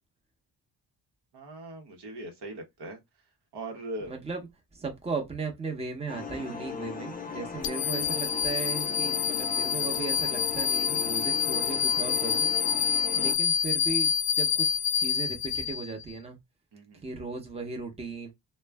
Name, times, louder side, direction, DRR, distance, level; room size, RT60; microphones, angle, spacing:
voice 1, 1.3-3.0 3.5-4.1 16.7-17.0, right 1 dB, 60° right, 0.9 m, -40 dB
voice 2, 4.1-4.4 4.7-12.5 13.1-16.4 17.0-18.3, right 4 dB, 15° right, 0.8 m, -36 dB
sound 1, 6.1-13.3, left 5 dB, 20° left, 0.4 m, -38 dB
sound 2, 7.6-16.1, left 7 dB, 75° left, 0.5 m, -27 dB
2.3 x 2.1 x 3.4 m
cardioid pair, 80°, 44 cm